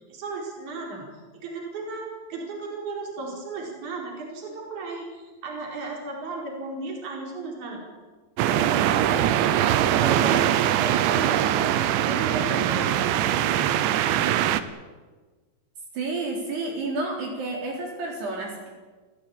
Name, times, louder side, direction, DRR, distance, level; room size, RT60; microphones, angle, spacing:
voice 1, 0.1-1.1 1.3-7.8 8.5-9.6 10.0-11.8 12.0-13.7, right 2 dB, 45° right, 0 dB, 5.8 m, -35 dB
sound 1, 8.4-14.6, right 11 dB, 85° right, 3.3 m, -22 dB
voice 2, 15.9-18.7, right 2 dB, 65° right, -1 dB, 5.9 m, -30 dB
28.5 x 15.5 x 8.7 m, 1.3 s
omnidirectional pair, 5.1 m